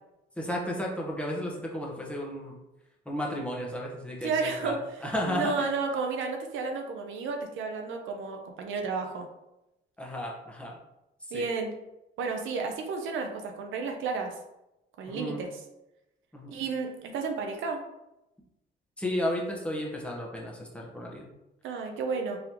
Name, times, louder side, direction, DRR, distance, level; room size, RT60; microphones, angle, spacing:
voice 1, 0.4-2.6 3.0-4.7 5.0-5.7 10.0-10.8 11.3-11.4 15.1-15.4 16.3-16.6 19.0-21.3, left 1 dB, 5° left, -2 dB, 1.0 m, -33 dB
voice 2, 4.2-9.3 11.3-11.7 12.2-14.3 15.0-15.6 16.5-17.8 21.6-22.4, right 4 dB, 80° right, 3 dB, 0.7 m, -32 dB
3.9 x 3.3 x 2.9 m, 0.92 s
cardioid pair, 90°, 20 cm